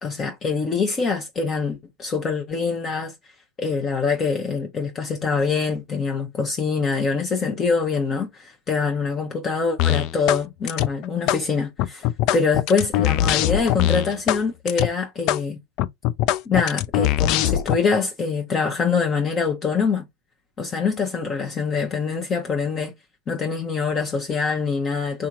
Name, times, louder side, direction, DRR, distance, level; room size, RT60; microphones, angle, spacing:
voice 1, 0.0-3.1 3.6-12.1 12.3-15.6 16.5-20.0 20.6-22.9 23.3-25.3, left 5 dB, 30° left, 0.8 m, -24 dB
sound 1, 9.8-10.4 10.7-11.4 11.8-14.4 14.7-14.9 15.3-15.4 15.8-17.8, left 12 dB, 50° left, 0.3 m, -21 dB
3.7 x 2.7 x 2.5 m
figure-of-eight pair, 85°, 0 cm